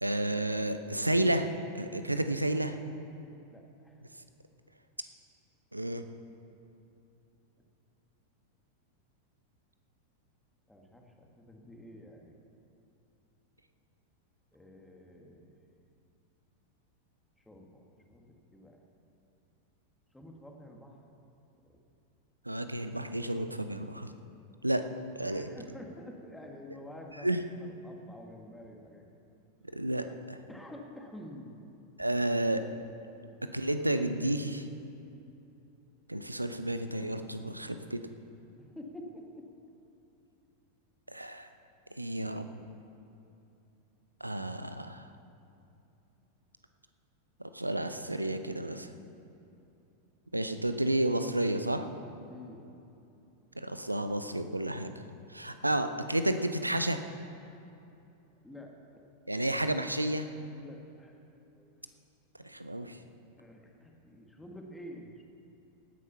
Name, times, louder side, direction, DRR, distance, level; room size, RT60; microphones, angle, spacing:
voice 1, 0.0-2.8 5.7-6.0 22.5-24.1 24.6-24.8 25.2-25.5 27.2-27.4 29.7-30.4 32.0-32.6 33.5-34.7 36.1-38.0 41.1-41.5 41.9-42.5 44.2-45.0 47.4-48.9 50.3-51.9 53.6-54.9 55.3-57.0 59.3-60.3 62.4-63.0, right 1 dB, 85° right, 9 dB, 0.7 m, -31 dB
voice 2, 3.5-4.0 10.7-12.4 14.5-15.5 17.5-17.8 18.1-18.8 20.1-21.0 25.2-29.0 30.5-31.5 38.6-39.5 52.3-52.7 58.4-59.0 60.5-61.1 61.6-61.7 63.4-65.2, left 1 dB, 5° left, 1 dB, 1.8 m, -49 dB
17.5 x 9.5 x 5.7 m, 2.8 s
figure-of-eight pair, 90°, 0 cm